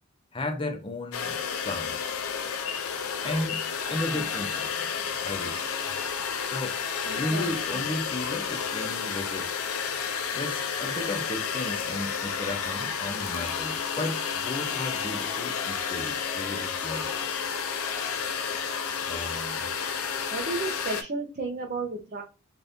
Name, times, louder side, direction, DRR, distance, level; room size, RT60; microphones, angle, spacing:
voice 1, 0.3-2.0 3.2-3.6 3.9-5.7 6.4-6.8 7.1-9.5 10.3-17.1 19.1-19.7, left 2 dB, 25° left, 0.5 m, -34 dB
sound 1, 1.1-21.0, left 6 dB, 70° left, 0.5 m, -31 dB
voice 2, 7.0-7.9 20.3-22.2, right 3 dB, 40° right, 0.5 m, -33 dB
2.7 x 2.5 x 3.4 m
head